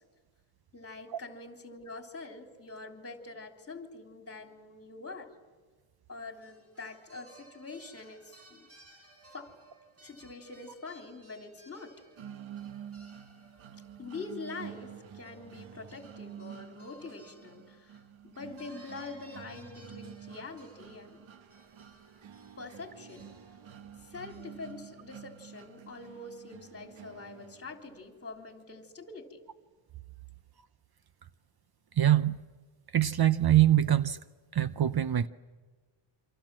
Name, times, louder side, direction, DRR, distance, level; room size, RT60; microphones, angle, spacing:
voice 1, 0.7-5.4 6.1-8.7 9.3-9.6 10.0-11.9 14.0-21.2 22.6-23.4 24.0-29.4, left 3 dB, 30° left, 4 dB, 3.5 m, -45 dB
sop sax solo (reverb), 6.3-18.2 18.6-24.7, right 2 dB, 30° right, 6.6 m, -59 dB
sound 1, 12.2-28.1, right 8 dB, 70° right, 1.3 m, -49 dB
voice 2, 32.0-32.4 32.9-34.2 34.5-35.3, right 12 dB, 50° right, 13 dB, 0.7 m, -24 dB
28.5 x 26.0 x 7.6 m, 1.4 s
wide cardioid pair, 160°, 49 cm